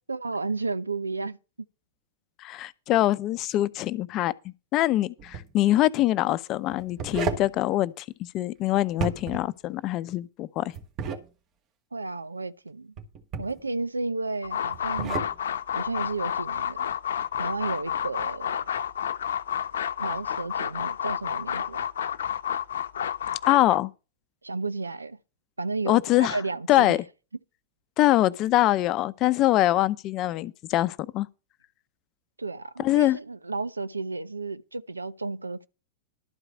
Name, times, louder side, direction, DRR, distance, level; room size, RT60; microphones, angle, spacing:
voice 1, 0.1-1.4 11.9-12.9 13.4-15.3 15.7-16.9 17.4-18.6 20.0-21.8 24.4-25.2 25.6-27.0 32.4-35.7, right 3 dB, 85° right, 0.7 m, -32 dB
voice 2, 2.4-8.0 8.3-10.7 23.5-23.9 25.9-26.4 26.7-27.0 28.0-31.3 32.8-33.2, left 15 dB, 40° left, 0.7 m, -24 dB
sound 1, 5.2-5.5 6.7-7.5 8.9-9.5 10.7-11.2 13.0-13.6 14.7-15.3, right 4 dB, 35° right, 1.9 m, -32 dB
sound 2, 14.4-23.8, left 9 dB, 70° left, 0.8 m, -30 dB
12.5 x 4.8 x 8.6 m
figure-of-eight pair, 100°, 0 cm